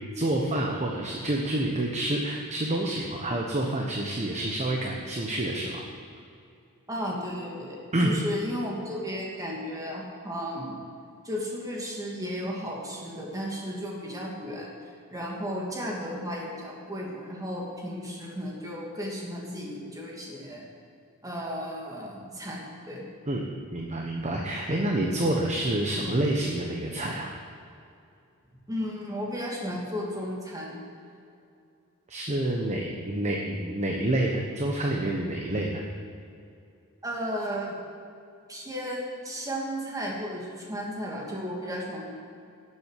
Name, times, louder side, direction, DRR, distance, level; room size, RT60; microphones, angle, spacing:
voice 1, 0.1-5.8 7.9-8.1 23.3-23.5 23.7-27.3 32.1-35.8, right 1 dB, 30° right, 0 dB, 1.1 m, -28 dB
voice 2, 6.9-10.8 11.2-20.6 21.2-23.0 28.7-30.8 37.0-37.8 38.5-42.1, equal, 15° right, -3 dB, 2.7 m, -34 dB
11.5 x 7.8 x 8.2 m, 2.5 s
head